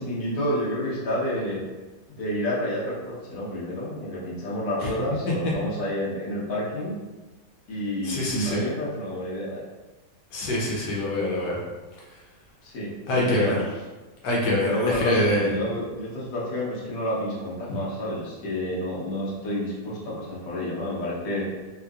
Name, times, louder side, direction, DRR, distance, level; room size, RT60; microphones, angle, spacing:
voice 1, 0.0-1.6 2.1-6.9 7.7-9.6 12.6-13.7 14.6-21.5, left 1 dB, 60° left, -6 dB, 1.3 m, -29 dB
voice 2, 8.0-8.7 10.3-11.6 13.1-13.6 14.2-15.6, left 1 dB, 85° left, -5 dB, 1.3 m, -25 dB
3.5 x 2.9 x 2.3 m, 1.2 s
omnidirectional pair, 1.8 m